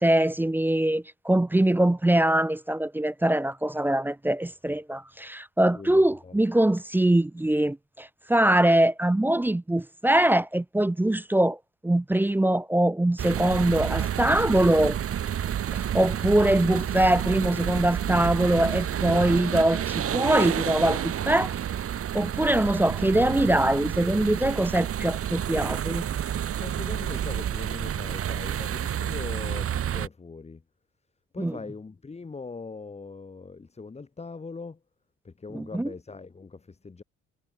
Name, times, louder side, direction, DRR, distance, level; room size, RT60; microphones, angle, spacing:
voice 1, 0.0-11.6 11.8-15.0 15.7-21.6 22.1-26.0 31.4-31.6 35.5-35.9, right 1 dB, 5° right, 0.4 m, -23 dB
voice 2, 5.7-6.4 26.6-30.6 31.3-34.8 35.2-37.0, left 4 dB, 20° left, 1.2 m, -41 dB
sound 1, 13.2-30.1, right 10 dB, 50° right, 0.8 m, -29 dB
cardioid pair, 90°, 30 cm